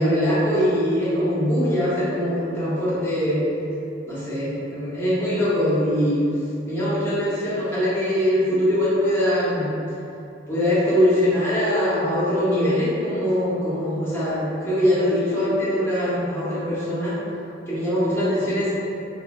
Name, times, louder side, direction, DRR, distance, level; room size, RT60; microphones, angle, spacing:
voice 1, 0.0-3.4 4.1-6.2 6.6-9.7 10.5-17.2 17.7-18.7, equal, 10° left, -12 dB, 1.1 m, -22 dB
4.1 x 2.3 x 2.6 m, 2.8 s
head